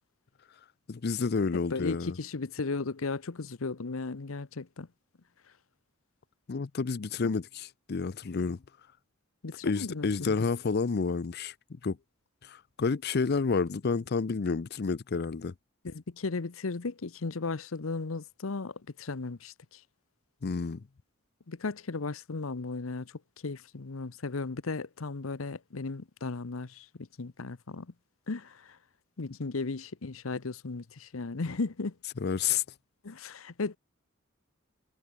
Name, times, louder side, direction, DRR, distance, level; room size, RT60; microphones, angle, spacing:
voice 1, 0.9-2.2 6.5-8.6 9.6-11.5 11.8-12.0 12.4-15.5 20.4-20.8 32.2-32.6, left 4 dB, 50° left, 0.5 m, -30 dB
voice 2, 1.5-4.9 7.2-7.3 9.4-10.4 15.8-19.8 21.5-23.1 23.4-27.9 28.3-28.8 29.2-31.9 33.0-33.8, left 3 dB, 80° left, 0.9 m, -36 dB
head